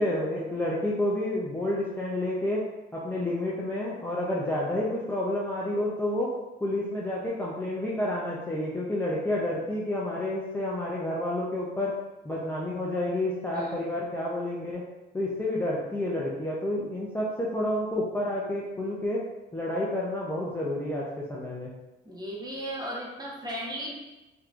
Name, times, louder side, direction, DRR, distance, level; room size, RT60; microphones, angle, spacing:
voice 1, 0.0-2.6 2.9-6.3 6.6-12.0 12.2-14.8 15.1-19.3 19.5-21.7, left 1 dB, 10° left, -5 dB, 0.5 m, -29 dB
voice 2, 13.5-13.9 22.0-23.9, equal, 20° right, -4 dB, 1.0 m, -36 dB
3.4 x 2.8 x 2.5 m, 1.0 s
cardioid pair, 90°, 20 cm